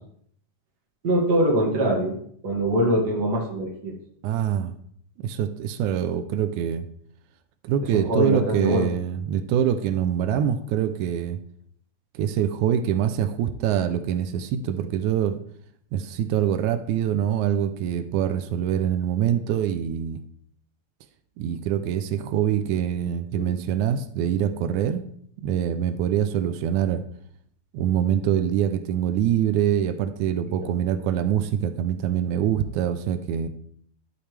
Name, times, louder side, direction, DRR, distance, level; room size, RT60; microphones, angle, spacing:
voice 1, 1.0-2.2 2.4-3.9 7.9-8.9 23.4-23.5 30.6-30.8, right 1 dB, 35° right, -1 dB, 2.2 m, -23 dB
voice 2, 4.2-4.7 5.2-6.9 7.6-11.4 12.2-15.4 15.9-20.2 21.4-25.0 25.4-27.0 27.7-33.5, right 9 dB, 85° right, 10 dB, 2.0 m, -24 dB
11.5 x 6.9 x 3.3 m, 0.64 s
omnidirectional pair, 3.4 m